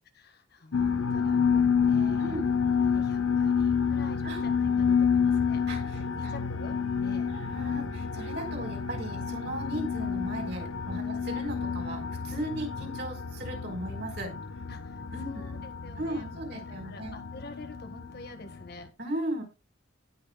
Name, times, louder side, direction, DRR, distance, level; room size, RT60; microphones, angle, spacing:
voice 1, 0.2-2.4 2.8-5.6 5.9-7.3 11.0-11.2 14.7-18.9, left 2 dB, 50° left, 7 dB, 1.6 m, -47 dB
sound 1, 0.7-18.9, left 6 dB, 90° left, 0.8 m, -29 dB
voice 2, 2.2-2.5 4.2-4.4 5.7-6.3 7.3-14.3 15.1-15.5 16.0-17.2 19.0-19.4, right 1 dB, 55° right, 1 dB, 4.4 m, -37 dB
18.5 x 6.6 x 2.3 m, 0.26 s
head